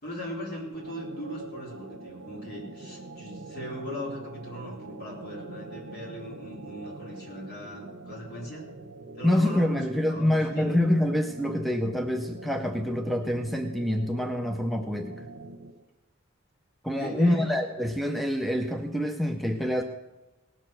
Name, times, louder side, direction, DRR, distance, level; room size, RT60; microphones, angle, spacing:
voice 1, 0.0-8.7 9.1-10.8 16.9-17.5, equal, 50° left, -3 dB, 4.0 m, -39 dB
sound 1, 0.7-15.9, right 2 dB, 80° right, 0.7 m, -44 dB
voice 2, 9.2-15.2 16.8-19.8, left 1 dB, ahead, 5 dB, 0.5 m, -26 dB
18.0 x 6.7 x 6.0 m, 1.1 s
head